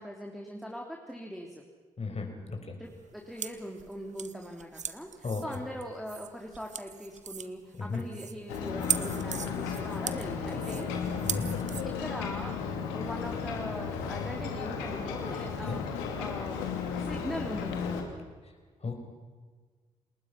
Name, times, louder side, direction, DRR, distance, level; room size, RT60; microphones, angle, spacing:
voice 1, 0.0-1.6 2.8-11.3 11.8-12.5 12.9-15.8 16.2-18.1, equal, ahead, 1 dB, 3.4 m, -41 dB
voice 2, 2.0-2.8 5.2-5.4 7.8-8.0 11.2-11.6 15.7-15.8 18.8-19.0, left 4 dB, 40° left, 4 dB, 5.4 m, -34 dB
sound 1, 2.9-11.8, right 7 dB, 50° right, 1.2 m, -39 dB
Ocean, 8.5-18.0, left 6 dB, 85° left, 2.5 m, -34 dB
29.5 x 20.0 x 6.0 m, 1.5 s
hypercardioid pair, 40°, 16 cm